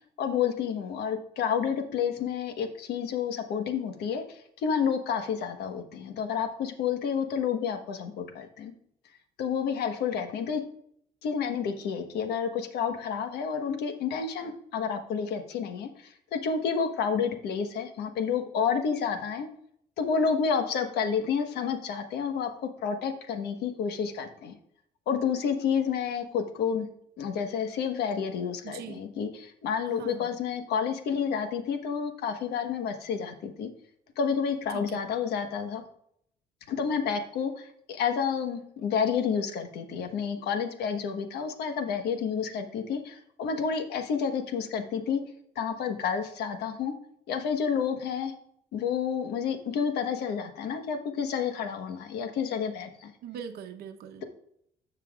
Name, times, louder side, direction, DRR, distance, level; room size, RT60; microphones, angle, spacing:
voice 1, 0.2-8.7 9.4-10.6 11.2-19.5 20.0-22.5 22.8-24.5 25.1-26.9 27.2-33.7 34.2-35.8 36.7-45.2 45.5-46.9 47.3-48.3 48.7-53.1, left 6 dB, 75° left, 7 dB, 1.3 m, -30 dB
voice 2, 28.6-29.1 29.9-30.4 34.7-35.0 53.2-54.2, right 8 dB, 70° right, 7 dB, 0.9 m, -42 dB
15.0 x 5.8 x 2.4 m, 0.69 s
cardioid pair, 110°, 17 cm